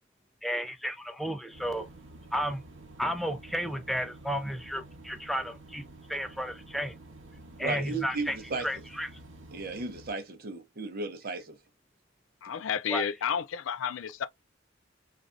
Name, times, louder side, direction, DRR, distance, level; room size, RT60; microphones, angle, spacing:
voice 1, 0.4-1.9 2.3-2.6 3.0-5.8 6.1-6.9 7.6-9.1 12.9-13.0, equal, ahead, 0.4 m, -33 dB
sound 1, 1.5-10.1, right 2 dB, 80° right, 0.9 m, -50 dB
voice 2, 7.6-8.7 9.5-11.6, right 3 dB, 50° right, 0.6 m, -35 dB
voice 3, 12.4-14.3, left 7 dB, 80° left, 0.4 m, -31 dB
3.2 x 2.4 x 2.4 m
head